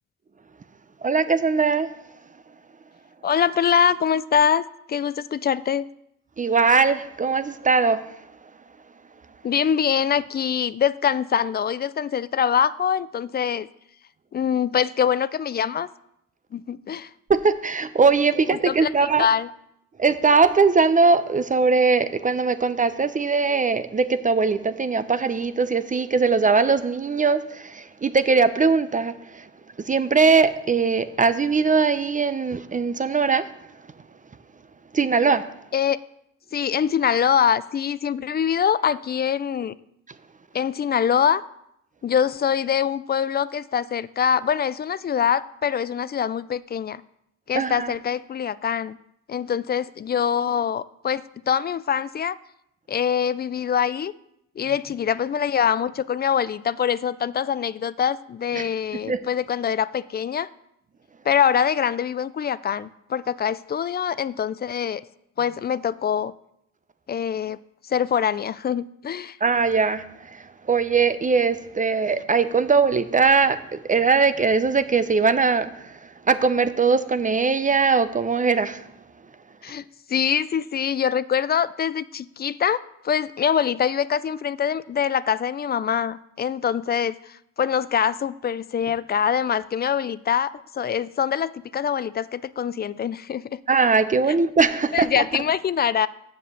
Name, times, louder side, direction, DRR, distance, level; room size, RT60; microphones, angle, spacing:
voice 1, 1.0-1.9 6.4-8.0 17.3-19.3 20.0-29.4 29.8-33.5 34.9-35.4 47.5-47.9 58.6-58.7 59.1-59.2 69.4-70.0 70.3-75.9 76.3-78.8 93.7-95.1, right 4 dB, 25° right, 13 dB, 0.6 m, -20 dB
voice 2, 3.2-5.9 9.4-13.7 14.3-15.9 16.5-17.1 18.5-19.5 35.7-36.0 36.5-39.7 40.5-41.4 42.0-47.0 47.5-49.0 49.3-52.4 52.9-54.1 54.6-60.5 61.3-65.0 65.4-66.3 67.1-67.6 67.8-69.4 79.6-79.8 80.1-93.6 94.3-94.4 94.9-96.1, left 8 dB, 35° left, 17 dB, 0.4 m, -24 dB
7.6 x 7.5 x 6.8 m, 0.78 s
cardioid pair, 90°, 30 cm